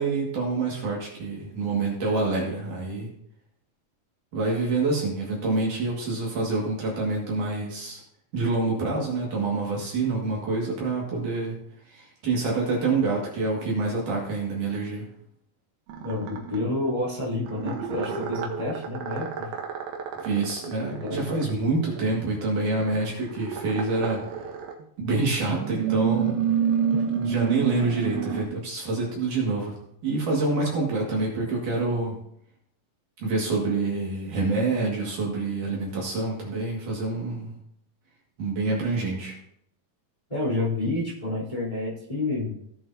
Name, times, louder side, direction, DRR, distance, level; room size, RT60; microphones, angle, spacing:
voice 1, 0.0-3.1 4.3-8.0 8.3-11.6 11.9-15.1 20.2-24.2 25.0-26.4 27.2-29.7 30.0-32.2 33.2-37.5 38.4-39.3, right 3 dB, 60° right, -3 dB, 3.4 m, -27 dB
sound 1, 15.9-16.6 17.4-22.3 23.0-24.8 25.4-28.4, right 8 dB, 85° right, 3.0 m, -29 dB
voice 2, 16.0-19.5 21.0-21.3 22.8-23.1 26.9-27.0 40.3-42.5, left 2 dB, 10° left, -8 dB, 3.7 m, -29 dB
17.0 x 7.5 x 2.8 m, 0.72 s
omnidirectional pair, 4.2 m